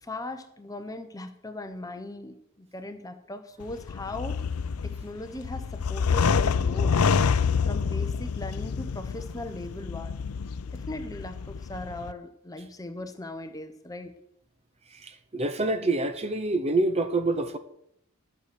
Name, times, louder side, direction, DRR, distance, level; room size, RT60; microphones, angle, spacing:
voice 1, 0.0-4.4 4.8-7.0 7.6-10.1 10.7-14.1, left 2 dB, 15° left, 0.8 m, -39 dB
sound 1, 3.6-12.1, left 5 dB, 85° left, 0.5 m, -27 dB
voice 2, 15.0-17.6, right 2 dB, 30° right, 0.7 m, -26 dB
12.0 x 6.8 x 6.8 m
head